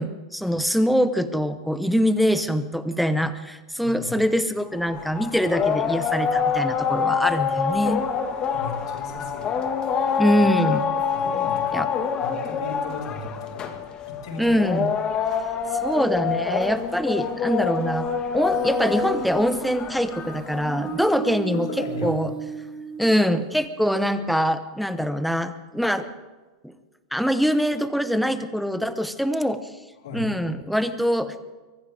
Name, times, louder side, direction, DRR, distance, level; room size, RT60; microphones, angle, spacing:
voice 1, 0.0-8.0 10.2-10.9 11.7-11.9 14.4-14.9 15.8-18.1 18.3-21.7 22.0-22.3 23.0-26.1 27.1-29.7 30.1-31.5, equal, ahead, 10 dB, 1.0 m, -23 dB
voice 2, 3.8-4.2 8.5-9.5 10.3-10.4 11.1-11.9 12.2-14.6 21.5-22.2 30.0-30.3, left 3 dB, 75° left, -1 dB, 5.9 m, -36 dB
sound 1, 4.8-21.1, left 6 dB, 30° left, 1.7 m, -26 dB
Human voice, 18.5-23.5, right 5 dB, 25° right, 2.9 m, -35 dB
23.5 x 16.5 x 3.5 m, 1.3 s
supercardioid pair, 130°, 3 cm